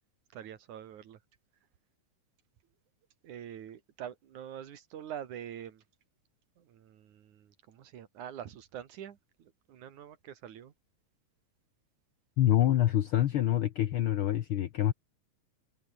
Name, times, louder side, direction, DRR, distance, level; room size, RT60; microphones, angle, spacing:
voice 1, 0.3-1.2 3.2-5.8 6.6-10.7, right 9 dB, 85° right, 3.3 m, -45 dB
voice 2, 12.4-14.9, left 12 dB, 70° left, 1.3 m, -26 dB
omnidirectional pair, 3.4 m